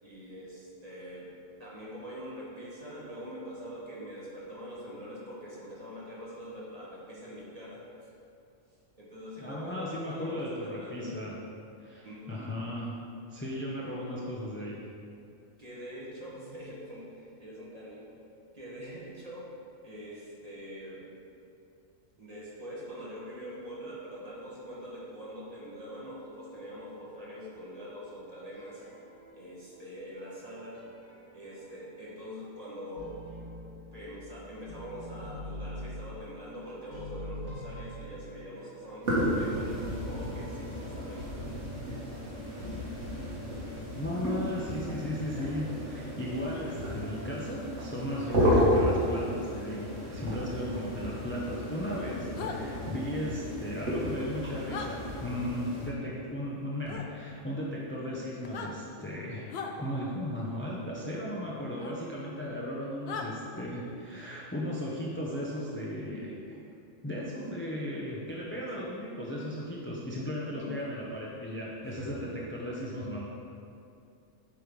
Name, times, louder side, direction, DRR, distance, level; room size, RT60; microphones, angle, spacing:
voice 1, 0.0-1.3 1.6-7.9 9.0-11.1 12.0-12.5 15.6-18.2 18.5-19.5 19.8-21.0 22.2-28.8 29.3-30.9 31.3-33.1 33.9-41.5 68.5-68.6 70.5-70.8 71.8-72.3, equal, 30° right, -7 dB, 1.5 m, -44 dB
voice 2, 9.4-11.4 11.8-13.0 13.3-14.8 44.0-66.6 67.0-73.3, left 1 dB, 15° left, -5 dB, 0.6 m, -36 dB
sound 1, 28.5-29.7 30.2-32.1 32.4-34.4 34.7-41.9, equal, 90° right, 2.0 m, -45 dB
sound 2, 39.0-55.9, equal, 65° right, 1.9 m, -32 dB
sound 3, 52.4-52.6 54.7-54.9 56.9-57.1 58.4-58.7 59.5-59.7 61.8-61.9 63.1-63.3, left 6 dB, 60° left, 0.8 m, -37 dB
8.2 x 3.2 x 5.2 m, 2.6 s
omnidirectional pair, 1.3 m